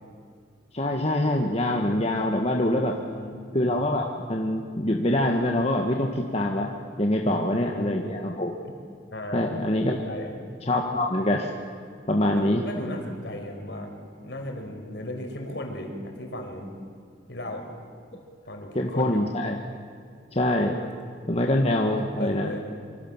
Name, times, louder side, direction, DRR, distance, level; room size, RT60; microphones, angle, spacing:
voice 1, 0.7-2.9 3.5-6.7 7.0-8.6 9.3-10.1 10.7-11.5 12.1-12.6 18.7-19.5 20.3-20.8 21.3-22.5, left 1 dB, 35° left, 1 dB, 1.7 m, -24 dB
voice 2, 2.5-3.3 7.2-8.2 9.1-9.7 10.0-10.3 12.3-13.9 14.2-16.7 17.3-17.7 18.4-19.3 22.0-22.6, left 1 dB, 65° left, 3 dB, 5.2 m, -36 dB
27.0 x 25.5 x 7.4 m, 2.3 s
head